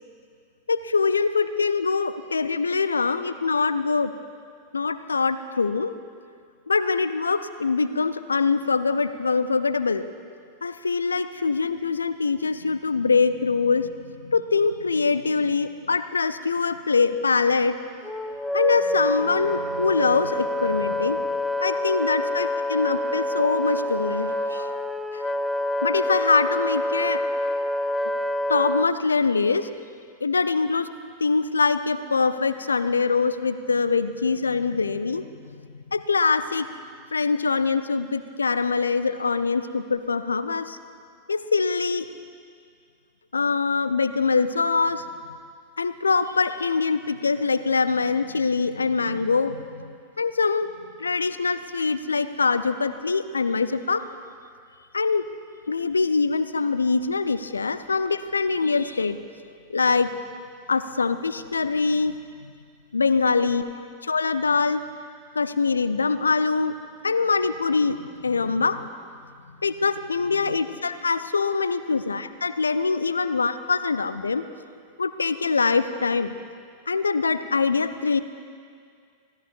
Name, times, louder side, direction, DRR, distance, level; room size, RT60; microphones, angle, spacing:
voice 1, 0.7-4.1 4.7-5.9 6.7-10.0 10.6-17.8 18.5-21.2 21.6-24.7 25.1-25.3 25.8-27.2 28.5-29.7 30.2-30.9 31.2-35.3 35.9-36.7 37.1-40.8 41.3-42.1 43.3-45.0 45.8-50.7 51.0-54.0 54.9-55.3 55.7-59.2 59.7-60.1 60.7-62.2 62.4-62.5 62.9-63.6 64.0-64.8 65.3-66.8 67.0-68.9 69.6-74.4 75.0-76.3 76.9-78.2, left 4 dB, 75° left, 13 dB, 0.5 m, -23 dB
Wind instrument woodwind instrument, 18.0-28.9, left 1 dB, 5° left, 0.4 m, -27 dB
25.5 x 16.0 x 2.5 m, 2.2 s
figure-of-eight pair, 90°, 0 cm